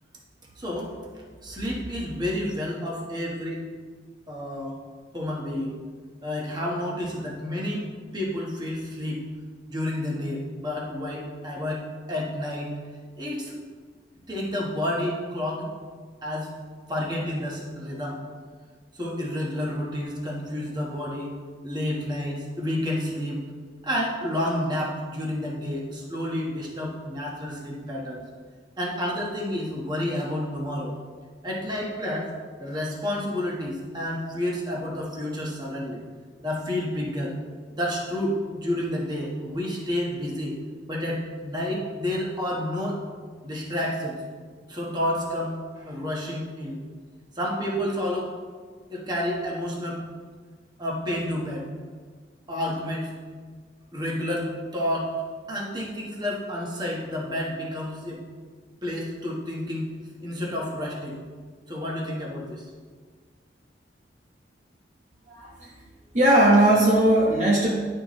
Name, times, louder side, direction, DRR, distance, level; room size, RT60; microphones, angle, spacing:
voice 1, 0.6-0.9 1.4-3.6 4.3-4.8 5.1-5.7 6.2-9.2 9.7-12.7 13.2-13.5 14.3-15.7 16.2-16.5 16.9-18.2 18.9-21.3 21.6-23.4 23.8-28.2 28.8-30.9 31.4-32.3 32.6-36.0 36.4-37.3 37.7-40.6 40.9-43.0 43.4-44.2 44.7-46.8 47.4-48.3 48.9-50.0 50.8-51.7 52.5-53.1 53.9-55.1 55.5-58.2 58.8-61.2 61.7-62.7, left 1 dB, 25° right, -3 dB, 1.2 m, -30 dB
voice 2, 65.3-65.7 66.1-67.7, right 1 dB, 40° right, -4 dB, 1.0 m, -19 dB
11.0 x 4.5 x 3.1 m, 1.6 s
head